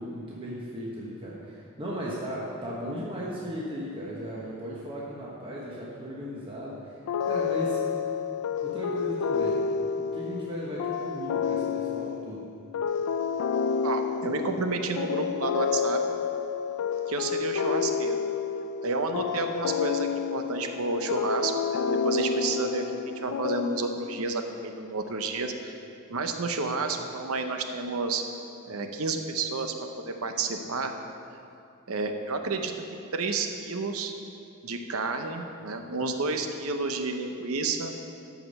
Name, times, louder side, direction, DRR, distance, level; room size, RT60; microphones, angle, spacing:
voice 1, 0.0-7.0 7.2-7.8 8.6-9.6 10.0-12.5, equal, 25° right, -5 dB, 1.1 m, -36 dB
sound 1, 7.1-24.2, left 6 dB, 80° left, 0.4 m, -30 dB
voice 2, 13.8-16.0 17.1-18.2 18.8-25.7 26.1-28.2 28.7-30.9 31.9-32.7 33.1-34.1 34.6-37.9, right 3 dB, 75° right, 6 dB, 0.8 m, -30 dB
13.5 x 5.0 x 5.4 m, 2.6 s
head